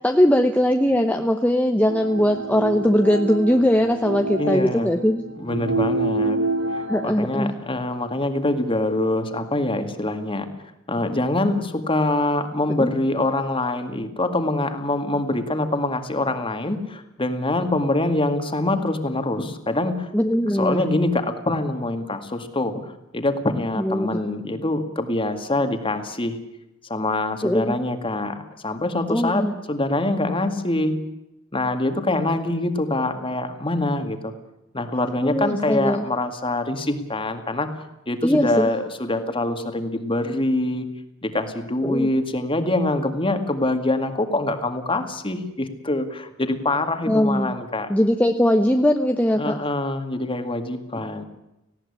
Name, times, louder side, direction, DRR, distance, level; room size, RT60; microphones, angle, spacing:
voice 1, 0.0-5.2 6.9-7.5 12.8-12.9 20.1-20.9 23.8-24.2 27.4-27.8 29.1-29.6 35.2-36.0 38.2-38.7 41.8-42.1 47.1-47.6 47.9-49.5, equal, 5° left, 4 dB, 0.9 m, -20 dB
sound 1, 1.9-7.1, right 2 dB, 65° right, 1.2 m, -27 dB
voice 2, 4.4-4.9 5.4-6.4 6.7-10.5 10.9-20.1 20.5-26.4 26.9-31.0 31.5-34.3 34.7-37.7 38.1-40.9 41.2-47.9 49.4-51.2, left 2 dB, 25° left, 7 dB, 2.1 m, -24 dB
19.0 x 16.5 x 9.9 m, 0.90 s
head